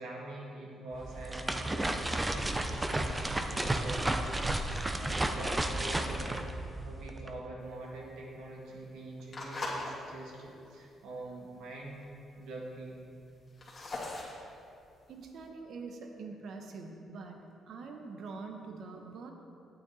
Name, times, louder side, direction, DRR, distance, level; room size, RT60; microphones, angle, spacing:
voice 1, 0.0-12.0 12.4-13.0, right 2 dB, 90° right, -2 dB, 1.7 m, -45 dB
sound 1, 0.9-7.3, right 1 dB, 15° right, 0.6 m, -32 dB
sound 2, 7.6-10.0 10.4-10.7 11.2-11.3 11.5-11.6 11.8-12.4 12.8-15.4, left 2 dB, 35° left, 2.3 m, -41 dB
voice 2, 15.1-19.3, right 4 dB, 65° right, 3 dB, 1.1 m, -44 dB
9.0 x 8.9 x 4.2 m, 2.5 s
cardioid pair, 90°, 0 cm